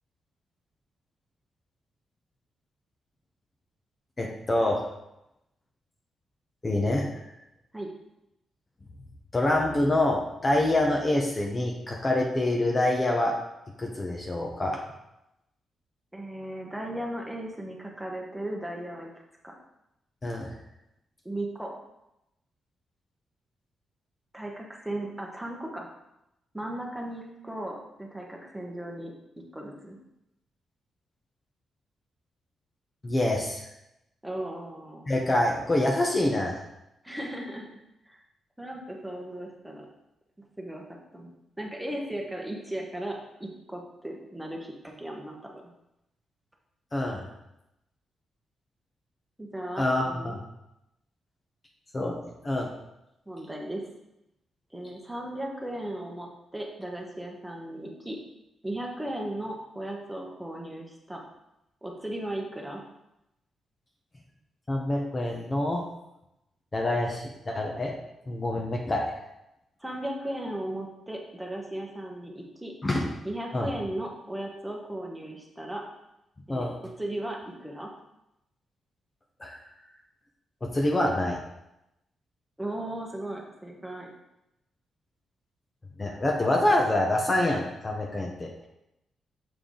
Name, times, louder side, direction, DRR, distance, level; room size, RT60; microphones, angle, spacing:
voice 1, 4.2-4.8 6.6-7.0 9.3-13.3 13.8-14.8 20.2-20.5 33.0-33.6 35.1-36.6 46.9-47.3 49.8-50.4 51.9-52.7 64.7-65.8 66.7-67.9 68.3-69.0 72.8-73.1 73.5-73.7 76.5-76.7 79.4-79.6 80.6-81.4 86.0-88.5, left 1 dB, 25° left, 0 dB, 0.9 m, -26 dB
voice 2, 16.1-19.1 19.4-19.5 21.2-21.7 24.3-25.9 26.5-29.1 29.5-30.0 34.2-35.1 37.0-37.7 38.1-38.2 38.6-39.9 40.6-41.3 41.6-45.6 49.4-50.4 53.3-53.8 54.7-58.2 58.6-61.2 61.8-62.8 69.8-72.7 73.2-75.8 76.5-76.7 77.0-77.9 82.6-84.1, right 1 dB, 5° right, 0 dB, 1.2 m, -36 dB
7.0 x 4.6 x 3.8 m, 0.86 s
cardioid pair, 110°, 0 cm